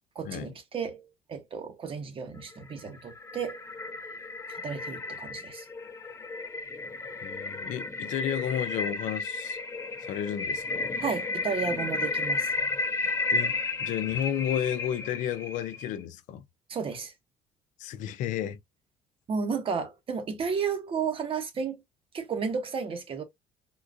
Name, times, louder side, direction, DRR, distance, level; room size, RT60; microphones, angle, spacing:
voice 1, 0.1-3.6 4.5-5.7 11.0-12.5 16.7-17.1 19.3-21.8 22.1-23.2, right 6 dB, 40° right, 1.0 m, -33 dB
sound 1, 2.6-15.9, left 3 dB, 20° left, 0.4 m, -33 dB
voice 2, 7.2-9.6 10.0-10.9 13.3-16.4 17.8-18.6, left 10 dB, 70° left, 0.6 m, -32 dB
3.7 x 2.4 x 2.5 m
supercardioid pair, 90°, 13 cm